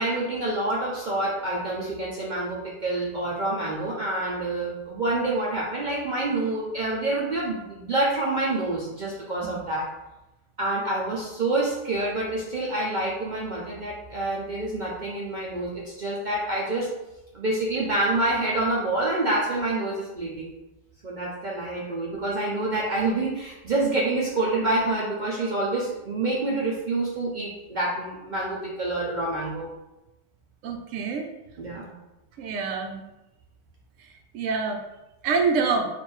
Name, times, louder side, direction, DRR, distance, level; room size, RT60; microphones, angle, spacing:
voice 1, 0.0-9.9 10.6-16.9 17.3-20.5 21.0-29.7 31.6-31.9, right 2 dB, 50° right, -4 dB, 0.6 m, -27 dB
voice 2, 30.6-31.3 32.4-33.0 34.3-34.8 35.2-35.9, right 4 dB, 75° right, 4 dB, 0.9 m, -26 dB
3.4 x 2.5 x 4.3 m, 0.96 s
omnidirectional pair, 1.4 m